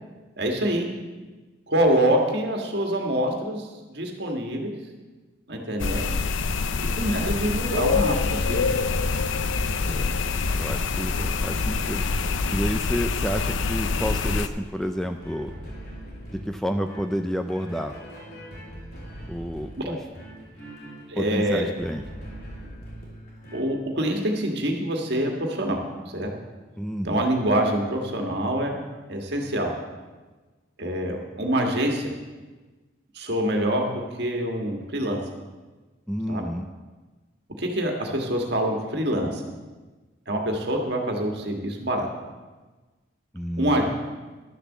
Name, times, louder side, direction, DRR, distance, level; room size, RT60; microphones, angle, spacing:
voice 1, 0.4-0.9 1.7-4.7 5.5-6.0 6.8-8.7 19.8-20.0 21.1-21.7 23.5-25.8 26.1-26.3 27.0-28.8 29.1-29.7 30.8-32.1 33.2-35.2 36.3-36.5 37.6-39.4 40.3-42.1 43.6-43.8, right 1 dB, 55° right, 2 dB, 1.8 m, -25 dB
sound 1, 5.8-14.5, left 4 dB, 75° left, 0.6 m, -25 dB
sound 2, 6.5-23.6, equal, 50° left, 3.7 m, -42 dB
voice 2, 10.5-11.1 11.4-12.0 12.5-15.5 16.3-18.0 19.3-20.0 21.2-22.0 26.8-27.3 36.1-36.7 43.3-43.8, equal, ahead, 6 dB, 0.4 m, -30 dB
12.0 x 6.9 x 7.3 m, 1.3 s
head